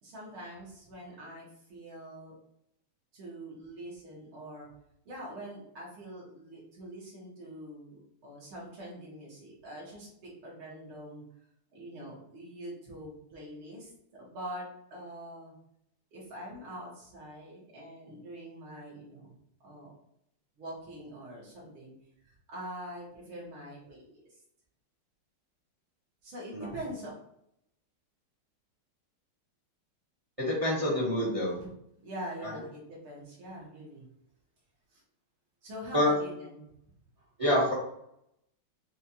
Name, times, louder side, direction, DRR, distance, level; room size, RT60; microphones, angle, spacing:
voice 1, 0.0-2.3 3.1-4.7 5.1-11.2 11.7-15.5 16.1-19.3 19.6-19.9 20.6-21.9 22.2-24.4 26.2-27.1 31.6-31.7 32.0-34.1 34.9-35.0 35.6-36.7 37.2-37.3, right 1 dB, 70° right, -5 dB, 2.3 m, -44 dB
voice 2, 30.4-31.6 32.4-32.5 35.9-36.1 37.4-37.7, left 1 dB, 25° right, -5 dB, 0.8 m, -27 dB
6.5 x 2.5 x 2.9 m, 0.76 s
omnidirectional pair, 2.4 m